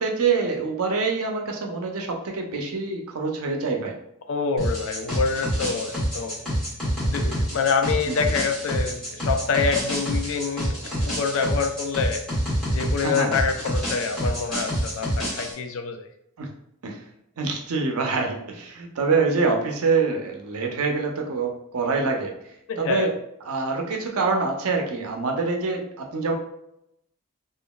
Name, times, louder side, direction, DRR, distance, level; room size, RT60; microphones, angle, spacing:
voice 1, 0.0-3.9 8.0-8.2 13.0-13.3 16.4-16.5 16.8-17.0 17.4-22.3 22.8-23.2 23.4-26.3, right 4 dB, 80° right, 2 dB, 0.5 m, -25 dB
voice 2, 4.3-6.4 7.0-12.2 12.7-16.1 22.7-23.1, left 5 dB, 65° left, 6 dB, 0.4 m, -26 dB
sound 1, 4.6-15.5, equal, 5° left, 1.4 m, -27 dB
2.8 x 2.4 x 2.2 m, 0.78 s
head